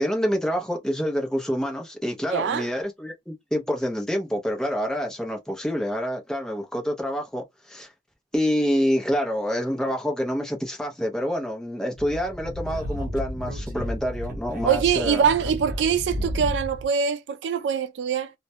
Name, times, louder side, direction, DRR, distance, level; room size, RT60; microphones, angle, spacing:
voice 1, 0.0-7.9 8.3-15.2, equal, 5° left, 0.6 m, -27 dB
voice 2, 2.3-2.7 14.6-18.3, right 7 dB, 80° right, 0.3 m, -23 dB
Speech / Wind, 12.0-16.9, equal, 55° right, 0.8 m, -32 dB
2.1 x 2.1 x 2.7 m
head